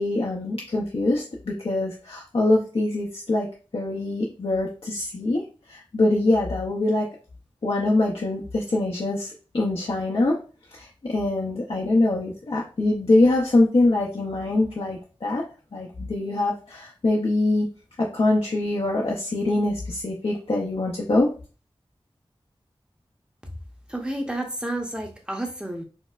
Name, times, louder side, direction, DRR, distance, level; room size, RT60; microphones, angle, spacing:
voice 1, 0.0-3.5 3.7-5.4 5.7-7.1 7.6-10.4 10.7-15.4 15.7-17.7 18.0-21.3, left 2 dB, 65° left, -3 dB, 0.6 m, -23 dB
voice 2, 23.9-25.8, right 1 dB, 10° right, 2 dB, 0.8 m, -30 dB
4.4 x 2.0 x 2.4 m, 0.35 s
wide cardioid pair, 40°, 10 cm